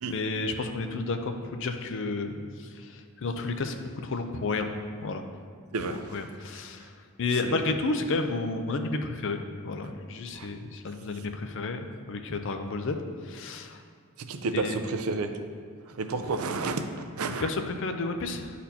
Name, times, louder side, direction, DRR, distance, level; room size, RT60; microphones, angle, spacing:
voice 1, 0.0-4.7 5.0-5.2 5.9-6.9 7.2-13.0 13.2-13.8 14.5-14.8 17.4-18.5, left 3 dB, 60° left, 6 dB, 0.5 m, -31 dB
voice 2, 5.7-6.2 7.4-7.6 10.3-10.5 14.3-15.3 15.9-17.5, right 3 dB, 80° right, 7 dB, 0.5 m, -31 dB
9.9 x 4.1 x 2.8 m, 2.1 s
head